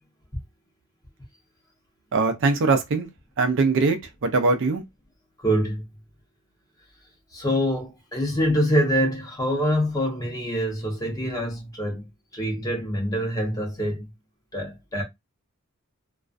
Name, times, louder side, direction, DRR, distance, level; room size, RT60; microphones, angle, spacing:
voice 1, 2.1-3.1 3.4-4.8, right 3 dB, 60° right, 0.4 m, -21 dB
voice 2, 5.4-5.8 7.3-12.0 12.3-14.0 14.5-15.0, equal, 15° left, 0.8 m, -25 dB
2.3 x 2.2 x 2.5 m
head